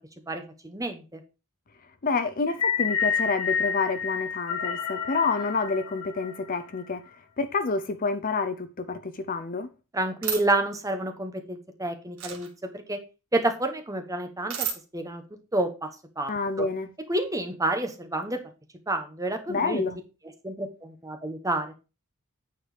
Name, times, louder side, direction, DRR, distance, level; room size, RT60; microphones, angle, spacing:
voice 1, 0.3-1.2 9.9-13.0 13.3-14.7 14.9-15.2 15.5-15.9 16.2-16.3 17.1-18.4 18.9-19.8 20.4-21.7, right 2 dB, 15° right, 1.1 m, -29 dB
voice 2, 2.0-7.0 7.4-9.7 16.3-16.9 19.5-20.0, left 4 dB, 40° left, 0.6 m, -28 dB
sound 1, 2.5-6.8, left 6 dB, 85° left, 1.3 m, -29 dB
sound 2, 10.2-10.4 12.2-12.5 14.5-14.8, right 7 dB, 65° right, 1.9 m, -30 dB
9.2 x 4.6 x 5.0 m
head